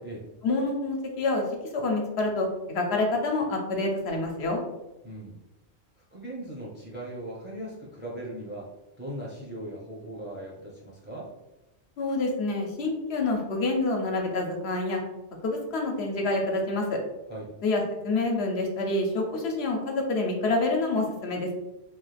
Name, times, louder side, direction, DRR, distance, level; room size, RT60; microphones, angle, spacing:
voice 1, 0.4-1.4 1.7-4.6 12.0-15.0 15.4-17.0 17.6-21.5, left 2 dB, 70° left, 1 dB, 0.9 m, -27 dB
voice 2, 5.0-5.4 6.1-8.7 9.0-11.3 17.3-17.5, right 1 dB, 10° right, -4 dB, 0.6 m, -39 dB
3.0 x 2.3 x 3.2 m, 0.97 s
omnidirectional pair, 1.1 m